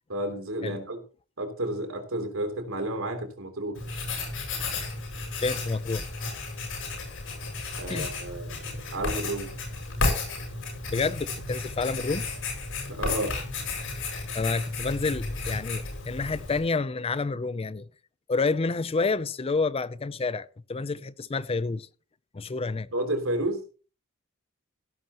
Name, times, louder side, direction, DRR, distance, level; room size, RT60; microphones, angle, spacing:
voice 1, 0.1-1.0 1.4-3.8 7.8-8.6 8.9-9.5 12.9-13.3 22.9-23.6, right 1 dB, 65° right, 3.2 m, -31 dB
Writing, 3.8-16.6, left 3 dB, 65° left, 7.7 m, -33 dB
voice 2, 5.4-6.1 7.9-8.1 10.9-12.2 14.3-17.9 18.3-21.9 22.3-22.9, left 4 dB, 25° left, 0.5 m, -29 dB
17.0 x 11.0 x 3.0 m
head